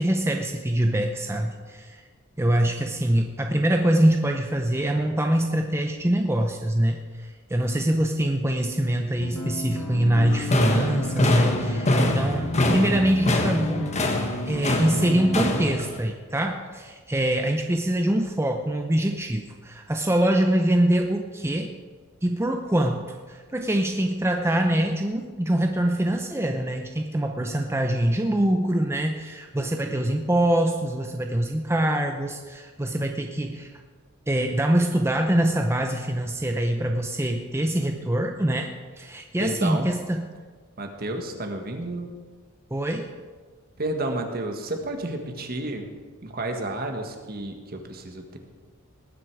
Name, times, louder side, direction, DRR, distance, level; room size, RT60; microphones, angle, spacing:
voice 1, 0.0-2.0 2.4-13.9 14.5-21.7 22.2-33.7 34.3-38.7 39.0-40.2 42.7-43.1, right 1 dB, 10° right, 4 dB, 0.7 m, -24 dB
sound 1, 9.2-15.8, equal, 85° left, 1.7 m, -32 dB
sound 2, 10.3-16.0, left 1 dB, 35° left, 1.4 m, -25 dB
voice 2, 39.4-39.9 40.8-42.1 43.8-45.9 46.2-48.4, right 2 dB, 45° right, 5 dB, 1.6 m, -31 dB
19.0 x 9.7 x 4.8 m, 1.5 s
head